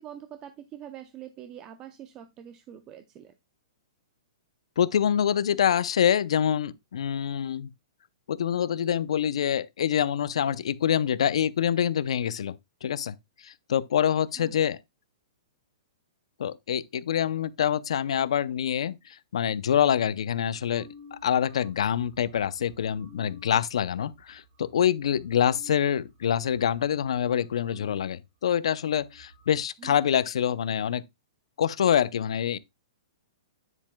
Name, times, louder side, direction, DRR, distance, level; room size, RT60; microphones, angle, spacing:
voice 1, 0.0-3.3 14.4-14.6 29.8-30.2, right 10 dB, 20° right, 0.6 m, -45 dB
voice 2, 4.8-7.7 8.3-12.5 12.8-13.2 13.4-14.8 16.4-31.0 31.6-32.6, left 9 dB, 75° left, 0.6 m, -26 dB
sound 1, 20.5-28.2 28.5-28.6 28.8-29.6, equal, 40° right, 2.7 m, -53 dB
9.8 x 7.3 x 2.2 m
hypercardioid pair, 155°, 3 cm